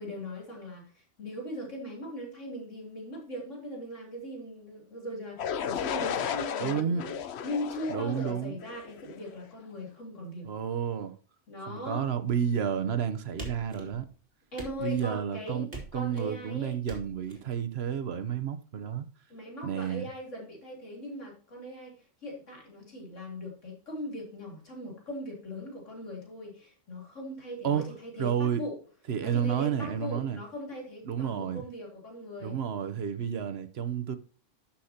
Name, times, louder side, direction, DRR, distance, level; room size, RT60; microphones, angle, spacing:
voice 1, 0.0-7.1 7.4-10.5 11.5-12.1 14.5-16.8 19.3-21.9 22.2-28.8 29.2-32.6, equal, 90° left, 3.6 m, -40 dB
sound 1, 5.4-9.3, left 8 dB, 65° left, 0.9 m, -34 dB
voice 2, 6.6-7.0 7.9-8.6 10.4-11.2 11.6-14.1 14.8-19.1 19.6-20.1 27.6-27.8 28.2-28.6 29.1-30.4 31.0-31.6 32.4-34.2, right 8 dB, 60° right, 1.1 m, -31 dB
sound 2, 13.4-14.2 14.6-15.2 15.7-16.3 16.9-17.4, right 2 dB, 45° right, 3.0 m, -43 dB
13.0 x 5.8 x 2.8 m
omnidirectional pair, 1.2 m